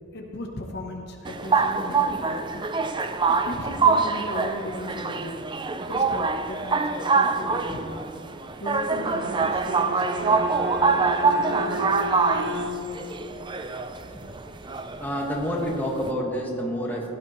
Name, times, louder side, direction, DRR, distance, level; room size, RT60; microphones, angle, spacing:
voice 1, 0.1-2.7 3.3-5.4 5.8-7.9 8.6-10.5 10.9-12.3, left 1 dB, 50° left, 1 dB, 0.9 m, -37 dB
sound 1, 1.2-16.1, right 4 dB, 20° right, 0.4 m, -25 dB
Bowed string instrument, 8.8-13.1, right 1 dB, 50° right, 0.9 m, -33 dB
voice 2, 13.9-14.2 15.0-17.1, equal, 10° left, -3 dB, 1.7 m, -29 dB
16.5 x 12.0 x 3.2 m, 2.8 s
head